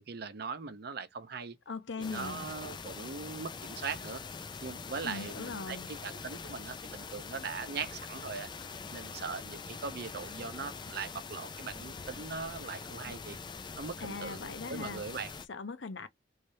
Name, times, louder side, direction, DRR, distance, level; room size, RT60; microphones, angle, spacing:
voice 1, 0.0-1.6 2.0-4.2 4.6-8.5 8.9-13.4 13.8-15.3, right 5 dB, 60° right, 0.7 m, -40 dB
voice 2, 1.7-2.5 5.0-5.9 14.0-15.0 15.5-16.1, left 4 dB, 80° left, 0.7 m, -40 dB
sound 1, 2.0-15.5, left 5 dB, 25° left, 0.4 m, -44 dB
3.2 x 2.7 x 3.1 m
head